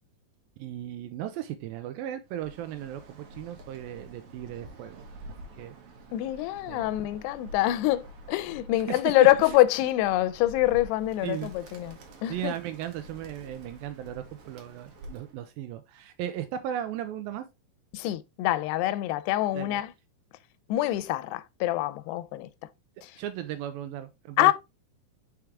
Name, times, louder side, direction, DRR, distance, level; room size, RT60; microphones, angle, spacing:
voice 1, 0.6-5.0 5.6-5.7 6.7-6.9 8.9-9.0 9.4-9.6 11.2-11.5 12.3-17.5 19.5-19.8 23.2-24.5, right 11 dB, 85° right, 2.1 m, -36 dB
Bird, 2.3-15.4, equal, 60° right, 2.0 m, -48 dB
voice 2, 6.1-12.5 17.9-19.9 20.7-22.5 23.0-23.1 24.4-24.5, left 15 dB, 85° left, 2.6 m, -25 dB
5.9 x 5.0 x 3.4 m
omnidirectional pair, 4.7 m